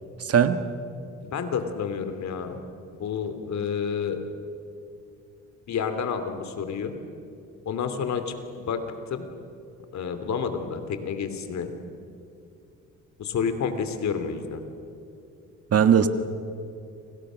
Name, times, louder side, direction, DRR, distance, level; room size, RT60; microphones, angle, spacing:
voice 1, 0.3-0.6 15.7-16.1, right 8 dB, 50° right, 9 dB, 1.7 m, -18 dB
voice 2, 1.2-2.6 3.0-4.2 5.7-7.0 7.6-8.8 9.1-9.3 9.9-11.7 13.2-14.6, left 6 dB, 65° left, 8 dB, 3.0 m, -29 dB
30.0 x 26.0 x 6.4 m, 2.6 s
cardioid pair, 90°, 30 cm